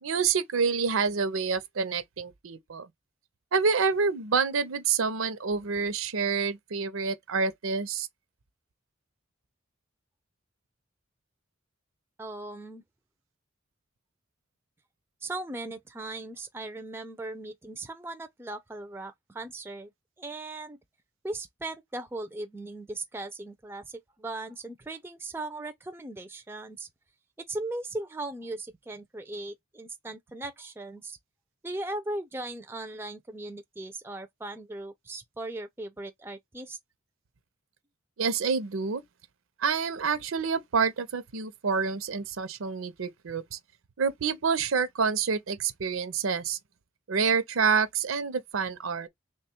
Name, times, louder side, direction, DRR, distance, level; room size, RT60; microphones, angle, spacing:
voice 1, 0.0-2.9 3.5-8.1 38.2-39.0 39.6-43.6 44.0-46.6 47.1-49.1, right 5 dB, 85° right, 0.6 m, -27 dB
voice 2, 12.2-12.8 15.2-19.9 20.2-20.8 21.2-26.9 27.5-31.2 31.6-36.8, right 2 dB, 10° right, 0.3 m, -38 dB
3.3 x 2.2 x 4.2 m
head